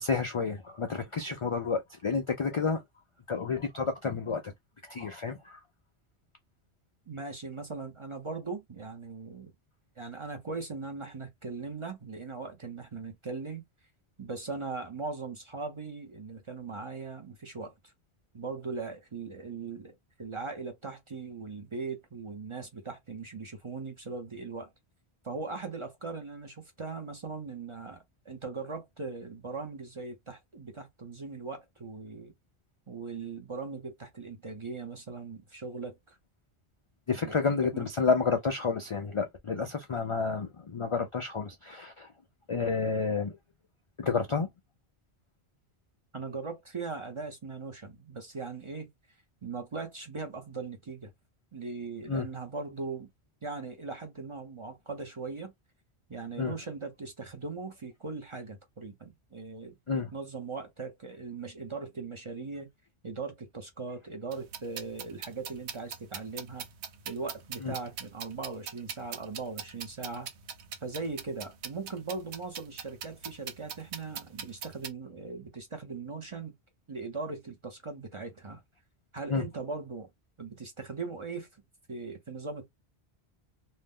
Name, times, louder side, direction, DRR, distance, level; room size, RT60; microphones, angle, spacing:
voice 1, 0.0-2.8 3.3-4.4 4.9-5.6 37.1-42.1 42.5-43.4 44.0-44.5 52.1-52.3 56.4-56.5 59.9-60.1 67.6-67.7 79.3-79.4, left 5 dB, 55° left, 0.3 m, -30 dB
voice 2, 7.1-9.5 10.0-13.6 14.2-17.7 18.3-24.7 25.2-32.3 32.9-36.2 37.2-37.9 46.1-48.9 49.4-51.1 51.5-53.1 53.4-55.5 56.1-59.7 60.1-62.7 63.0-66.7 67.1-70.3 70.8-76.5 76.9-78.6 79.1-80.1 80.4-81.5 81.9-82.7, right 4 dB, 35° right, 0.6 m, -39 dB
sound 1, 64.3-74.9, right 7 dB, 90° right, 0.9 m, -42 dB
2.7 x 2.0 x 3.5 m
omnidirectional pair, 1.1 m